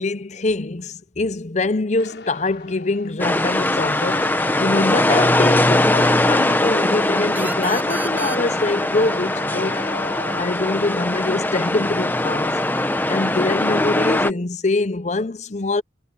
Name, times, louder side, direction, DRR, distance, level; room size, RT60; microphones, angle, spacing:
voice 1, 0.0-9.8 10.3-12.6 13.1-15.8, left 2 dB, 40° left, 0.7 m, -24 dB
sound 1, 2.0-10.4, left 3 dB, 75° left, 7.2 m, -39 dB
sound 2, 3.2-14.3, left 1 dB, 10° left, 0.9 m, -21 dB
sound 3, 7.4-10.8, right 2 dB, 10° right, 6.0 m, -35 dB
head